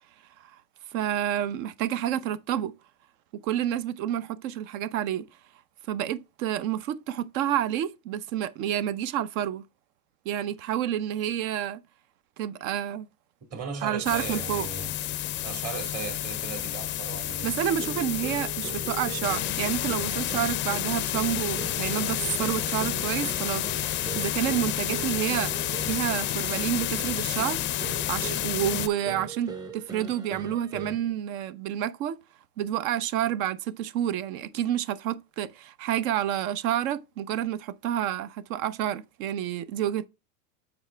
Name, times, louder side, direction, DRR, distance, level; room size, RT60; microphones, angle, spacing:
voice 1, 0.9-2.7 3.4-5.3 5.9-9.6 10.2-11.8 12.4-13.1 13.8-14.7 17.4-27.6 28.1-32.2 32.6-40.1, right 11 dB, 65° right, 0.9 m, -29 dB
voice 2, 13.5-15.0 15.4-17.5, right 6 dB, 35° right, 2.2 m, -37 dB
sound 1, 14.0-28.9, left 13 dB, 30° left, 0.4 m, -30 dB
sound 2, 17.8-31.1, right 5 dB, 10° right, 0.8 m, -41 dB
7.1 x 4.8 x 3.4 m
supercardioid pair, 115°, 44 cm